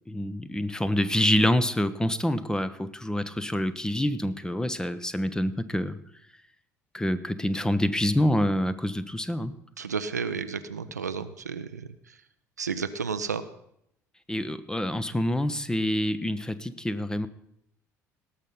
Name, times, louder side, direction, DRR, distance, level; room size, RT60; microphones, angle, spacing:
voice 1, 0.1-6.0 6.9-9.5 14.3-17.3, left 1 dB, 10° left, 14 dB, 0.8 m, -26 dB
voice 2, 9.8-11.8 12.6-13.4, right 5 dB, 85° right, 11 dB, 0.5 m, -32 dB
18.5 x 6.5 x 5.6 m, 0.75 s
figure-of-eight pair, 60°, 9 cm